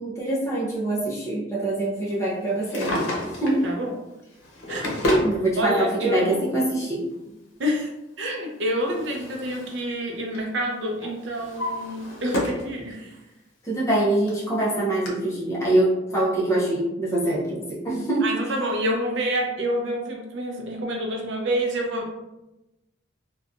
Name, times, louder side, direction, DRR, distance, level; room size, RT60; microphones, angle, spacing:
voice 1, 0.0-3.0 3.4-3.6 5.2-7.0 13.6-18.3, right 1 dB, 15° left, -6 dB, 0.6 m, -24 dB
Drawer open or close, 2.5-3.7 4.4-5.3 6.4-6.5 8.3-9.8 10.1-10.5 11.0-12.7 13.1-13.2 13.9-14.0 14.3-14.4 15.1-15.2, left 1 dB, 90° left, 0.7 m, -29 dB
voice 2, 3.6-3.9 4.7-4.9 5.6-6.6 7.6-7.9 8.2-13.2 18.2-22.1, equal, 75° right, 1 dB, 0.5 m, -27 dB
2.8 x 2.2 x 2.4 m, 0.96 s
head